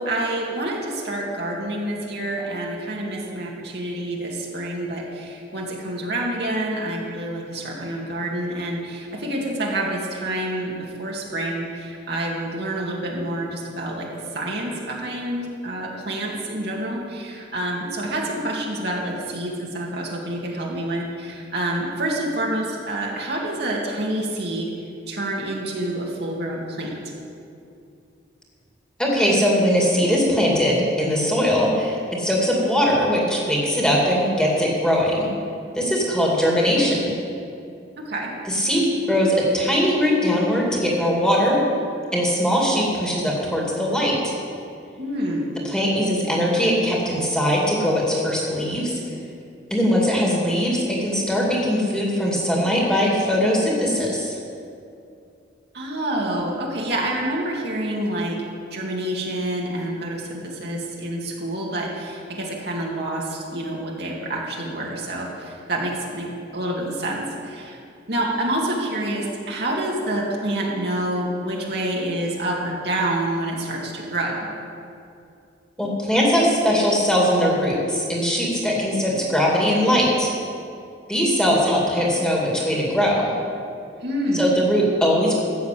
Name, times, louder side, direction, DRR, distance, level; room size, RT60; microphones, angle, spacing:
voice 1, 0.0-24.7 25.1-26.9 38.0-38.3 45.0-45.6 55.7-58.4 58.7-67.8 68.1-74.5 84.0-84.7, right 1 dB, 60° right, -2 dB, 2.3 m, -27 dB
voice 2, 29.0-35.3 35.7-37.1 38.5-41.6 42.1-44.3 45.6-48.9 49.7-54.3 75.8-80.3 81.1-83.3 84.3-85.4, equal, 5° left, -4 dB, 2.5 m, -20 dB
13.5 x 7.0 x 8.4 m, 2.5 s
head